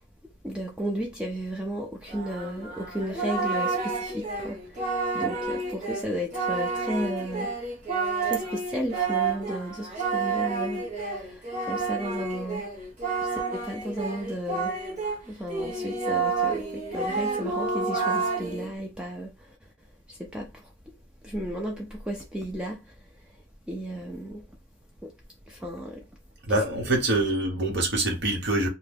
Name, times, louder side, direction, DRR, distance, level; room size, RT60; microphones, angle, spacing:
voice 1, 0.4-7.5 8.2-12.7 13.2-14.8 15.3-19.7 20.1-20.9 21.2-23.0 23.3-23.4 23.7-24.4 25.0-25.1 25.5-26.1, equal, 5° right, 0.4 m, -34 dB
Singing, 2.1-15.2 15.5-18.7, right 4 dB, 35° right, 1.0 m, -30 dB
voice 2, 26.4-28.7, right 2 dB, 60° right, 1.1 m, -25 dB
2.8 x 2.2 x 3.3 m
head